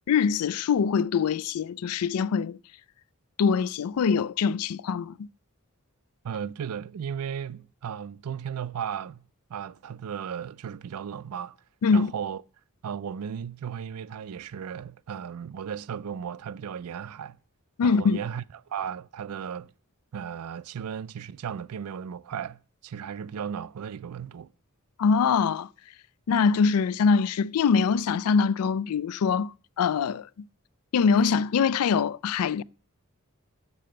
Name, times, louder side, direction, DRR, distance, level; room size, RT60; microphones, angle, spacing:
voice 1, 0.1-2.6 3.4-5.3 11.8-12.1 17.8-18.2 25.0-25.7 26.3-30.5 30.9-32.6, left 5 dB, 80° left, 0.4 m, -23 dB
voice 2, 6.2-11.6 11.9-12.4 12.8-17.4 17.8-19.7 20.1-24.5, right 8 dB, 80° right, 0.4 m, -35 dB
6.9 x 6.7 x 7.5 m
head